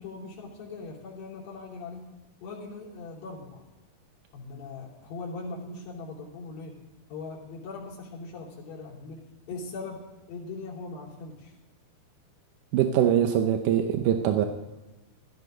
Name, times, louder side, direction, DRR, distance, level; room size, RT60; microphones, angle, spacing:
voice 1, 0.0-2.1 2.4-3.6 4.3-6.7 7.1-9.2 9.5-11.5, left 3 dB, 60° left, -4 dB, 4.9 m, -40 dB
voice 2, 12.7-14.5, right 10 dB, 75° right, 6 dB, 1.9 m, -23 dB
15.5 x 14.0 x 3.9 m, 1.1 s
omnidirectional pair, 4.6 m